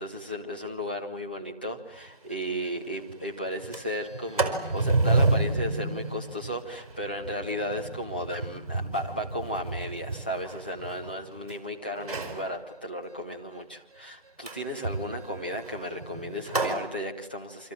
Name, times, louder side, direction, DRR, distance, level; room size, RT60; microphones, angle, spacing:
voice 1, 0.0-17.7, equal, 10° left, -1 dB, 1.1 m, -34 dB
Sliding door, 2.0-2.1 2.4-2.5 2.8-3.1 3.5-11.5 12.0-12.4 14.4-16.8, right 3 dB, 40° right, 4.9 m, -30 dB
29.5 x 26.0 x 7.6 m, 0.89 s
figure-of-eight pair, 165°, 30 cm